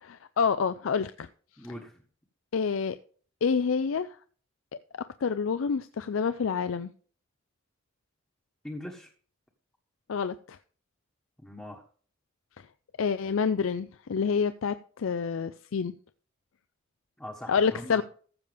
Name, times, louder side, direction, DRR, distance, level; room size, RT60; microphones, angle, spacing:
voice 1, 0.0-1.3 2.5-3.0 3.4-4.1 5.2-6.9 10.1-10.6 13.0-15.9 17.5-18.0, left 6 dB, 80° left, 12 dB, 0.4 m, -28 dB
voice 2, 1.6-1.9 8.6-9.1 11.4-11.8 17.2-18.0, left 1 dB, 10° left, -2 dB, 1.3 m, -41 dB
14.5 x 6.7 x 3.5 m, 0.43 s
head